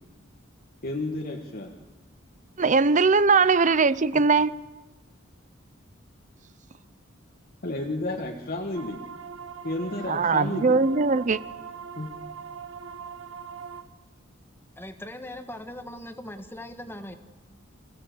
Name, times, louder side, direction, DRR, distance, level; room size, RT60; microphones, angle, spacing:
voice 1, 0.8-1.7 4.1-4.2 7.6-9.0 9.6-10.8 12.0-12.4, left 2 dB, 50° left, 1.6 m, -32 dB
voice 2, 2.6-4.5 10.1-11.4, right 4 dB, 40° right, 0.6 m, -20 dB
sound 1, 8.7-13.8, right 6 dB, 75° right, 1.7 m, -41 dB
voice 3, 14.8-17.1, left 1 dB, 10° left, 1.5 m, -40 dB
28.5 x 16.5 x 7.8 m
head